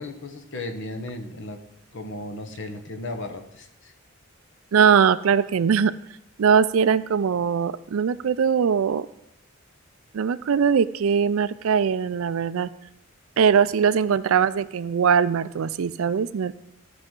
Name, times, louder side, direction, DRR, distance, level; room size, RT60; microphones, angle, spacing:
voice 1, 0.0-1.6 1.9-3.9, left 2 dB, 60° left, 6 dB, 1.1 m, -35 dB
voice 2, 4.7-5.9 6.4-9.1 10.1-12.7 13.4-16.5, right 7 dB, 70° right, 16 dB, 0.4 m, -21 dB
15.5 x 6.0 x 3.7 m, 0.81 s
head